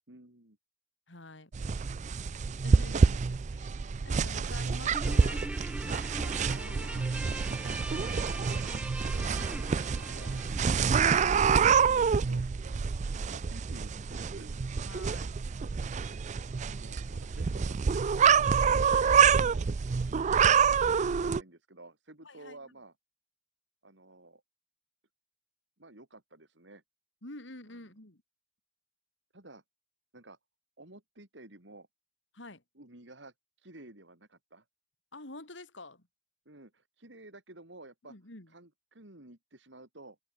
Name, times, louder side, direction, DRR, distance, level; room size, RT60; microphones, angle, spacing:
voice 1, 0.1-0.6 3.8-3.9 6.5-7.1 8.2-11.0 11.6-12.4 13.3-14.5 16.1-16.2 16.6-20.4 21.1-22.9 23.8-24.4 25.8-26.8 27.7-27.8 29.3-29.6 30.1-30.4 30.8-31.9 32.8-34.6 36.5-38.2 38.5-40.2, right 2 dB, 70° right, 3.9 m, -52 dB
voice 2, 1.1-1.5 2.6-3.7 4.0-5.4 6.2-6.3 10.0-10.7 11.2-12.5 14.8-15.3 19.4-19.5 22.2-22.6 27.2-28.2 32.3-32.6 35.1-36.1 38.1-38.5, left 2 dB, 80° left, 4.0 m, -48 dB
sound 1, 1.5-21.4, right 6 dB, 40° right, 0.4 m, -27 dB
Guitar, 4.9-11.6, right 1 dB, 5° right, 1.0 m, -42 dB
open air
head